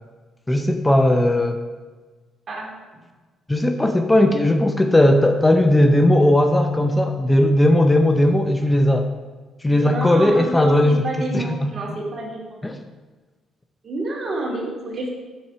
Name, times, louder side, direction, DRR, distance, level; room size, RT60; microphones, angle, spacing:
voice 1, 0.5-1.6 3.5-9.1 9.6-12.0 12.6-12.8, left 1 dB, 15° left, 6 dB, 0.5 m, -17 dB
voice 2, 9.7-12.4 13.8-15.1, right 2 dB, 50° right, -2 dB, 2.3 m, -29 dB
7.2 x 4.6 x 5.6 m, 1.3 s
cardioid pair, 90°, 0 cm